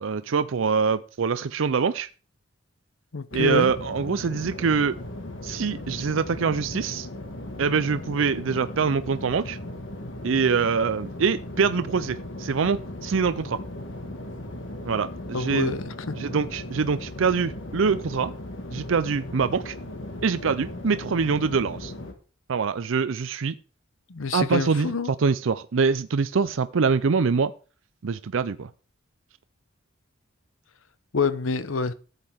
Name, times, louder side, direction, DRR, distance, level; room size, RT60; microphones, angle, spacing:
voice 1, 0.0-2.1 3.3-5.0 5.4-7.1 7.6-9.6 10.2-13.6 14.8-15.7 16.1-18.3 18.7-19.8 20.2-21.9 22.5-23.5 24.3-27.5 28.0-28.7, right 5 dB, 75° right, 0.5 m, -24 dB
voice 2, 3.1-3.7 15.3-15.9 24.1-25.1 31.1-31.9, left 4 dB, 85° left, 0.8 m, -26 dB
sound 1, 3.3-22.1, left 1 dB, 65° left, 1.6 m, -37 dB
13.0 x 8.2 x 3.6 m
head